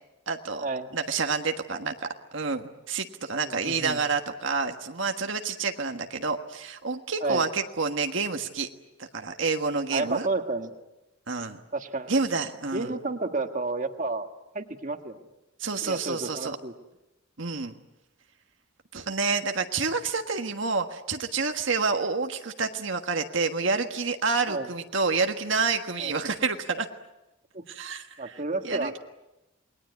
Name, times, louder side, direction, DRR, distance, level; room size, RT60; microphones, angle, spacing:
voice 1, 0.3-0.7 0.9-8.7 9.1-10.3 11.3-11.6 12.1-12.9 15.6-16.6 17.4-17.7 18.9-26.9 27.7-29.0, right 4 dB, 65° right, 5 dB, 1.5 m, -28 dB
voice 2, 3.4-4.0 7.2-7.4 9.9-10.7 11.7-12.1 12.7-14.3 14.5-15.2 15.8-16.7 24.5-24.7 26.0-26.1 27.5-27.6 28.2-29.0, right 3 dB, 40° right, 6 dB, 1.6 m, -31 dB
28.5 x 21.0 x 9.4 m, 0.98 s
head